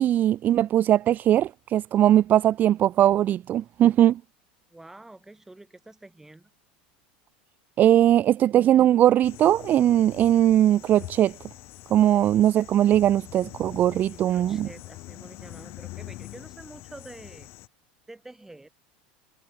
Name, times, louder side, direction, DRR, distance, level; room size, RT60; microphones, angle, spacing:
voice 1, 0.0-4.2 7.8-11.4 11.9-14.7, right 12 dB, 40° right, 0.4 m, -20 dB
voice 2, 4.7-6.5 14.0-17.5 18.1-18.7, right 2 dB, 10° right, 7.0 m, -47 dB
sound 1, 9.2-17.7, left 20 dB, 55° left, 1.1 m, -44 dB
hypercardioid pair, 105°, 5 cm